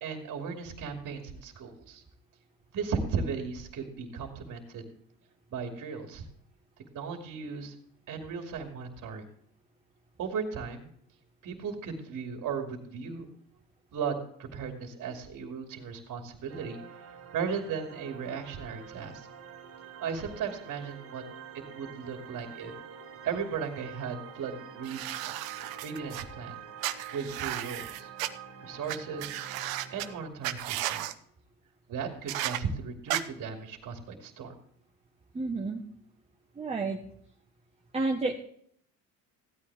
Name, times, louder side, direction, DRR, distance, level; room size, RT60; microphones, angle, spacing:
voice 1, 0.0-2.0 2.7-4.8 5.5-6.2 6.9-7.7 8.1-9.2 10.2-10.9 11.4-13.3 13.9-19.3 20.0-21.2 21.5-22.7 23.2-25.3 25.8-26.6 27.1-28.1 28.6-29.4 29.9-31.0 31.9-34.5, right 6 dB, 55° right, 3 dB, 2.7 m, -36 dB
sound 1, 16.5-30.3, right 7 dB, 40° right, 1.9 m, -47 dB
sound 2, 24.8-26.2 26.8-28.3 28.9-29.0 29.2-30.1 30.4-31.1 32.3-32.6 33.1-33.2, right 14 dB, 75° right, 1.0 m, -34 dB
voice 2, 35.3-35.8 36.6-37.0 37.9-38.4, right 3 dB, 15° right, 2 dB, 1.4 m, -30 dB
15.5 x 9.5 x 3.6 m, 0.64 s
supercardioid pair, 95°, 36 cm